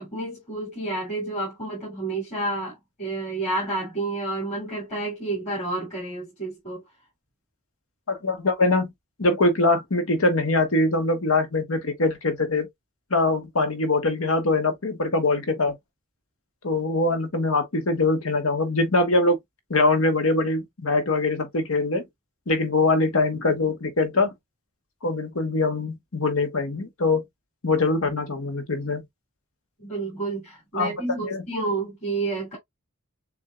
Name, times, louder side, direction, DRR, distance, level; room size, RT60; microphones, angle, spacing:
voice 1, 0.0-6.8 29.8-32.6, right 2 dB, 35° left, 3.0 m, -30 dB
voice 2, 8.1-8.9 9.2-12.7 13.1-15.7 16.6-19.4 19.7-22.0 22.5-24.3 25.0-27.2 27.6-29.0 30.7-30.9 31.3-31.4, left 2 dB, 85° left, 1.4 m, -23 dB
7.1 x 2.6 x 2.3 m
head